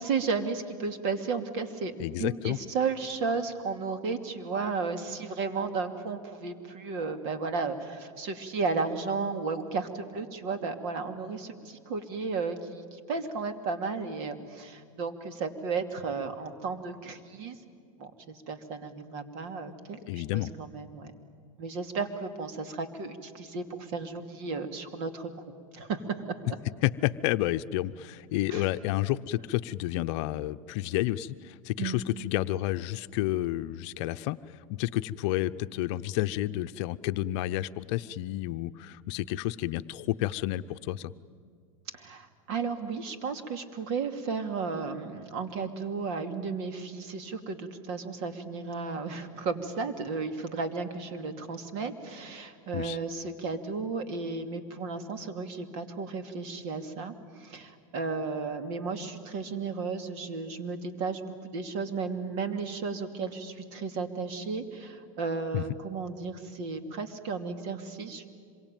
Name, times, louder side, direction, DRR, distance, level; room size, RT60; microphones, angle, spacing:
voice 1, 0.0-1.9 2.2-17.6 18.0-21.1 21.6-25.3 25.7-26.4 28.5-28.7 31.8-32.0 41.9-61.2 61.5-68.3, right 4 dB, 55° right, 8 dB, 2.7 m, -34 dB
voice 2, 2.0-2.6 19.9-20.5 26.8-41.1 52.7-53.0 65.5-65.6, left 15 dB, 55° left, 11 dB, 0.7 m, -30 dB
26.5 x 23.5 x 9.2 m, 2.2 s
supercardioid pair, 135°, 18 cm